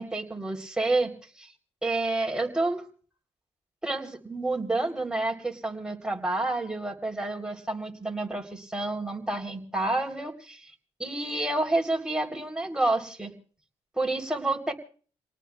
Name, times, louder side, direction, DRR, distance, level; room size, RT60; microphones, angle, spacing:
voice 1, 0.0-1.5 1.8-2.8 3.8-10.7 11.0-13.3 14.0-14.7, right 2 dB, 5° right, 2 dB, 3.5 m, -29 dB
29.5 x 19.0 x 2.4 m, 0.42 s
cardioid pair, 80°, 11 cm